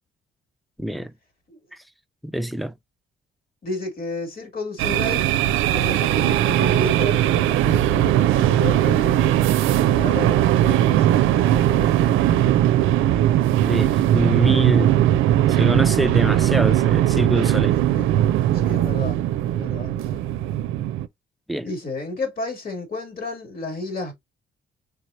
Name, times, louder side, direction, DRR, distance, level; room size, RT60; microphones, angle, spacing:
voice 1, 0.8-1.1 2.2-2.7 13.6-14.9 15.5-17.8 21.5-21.7, equal, ahead, 0.4 m, -24 dB
voice 2, 3.6-5.3 5.7-12.6 17.9-18.1 18.5-20.2 21.6-24.1, left 2 dB, 50° left, 2.4 m, -32 dB
sound 1, 4.8-21.1, right 12 dB, 85° right, 0.4 m, -19 dB
4.6 x 3.2 x 2.6 m
cardioid pair, 90°, 20 cm